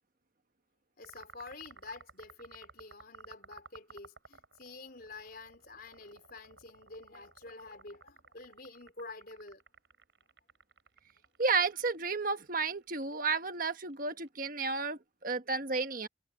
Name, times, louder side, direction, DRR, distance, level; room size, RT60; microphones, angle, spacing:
voice 1, 1.0-9.6, left 3 dB, 50° left, 4.2 m, -49 dB
sound 1, 1.0-14.3, right 5 dB, 70° right, 5.1 m, -56 dB
voice 2, 11.4-16.1, right 4 dB, 45° right, 1.3 m, -32 dB
head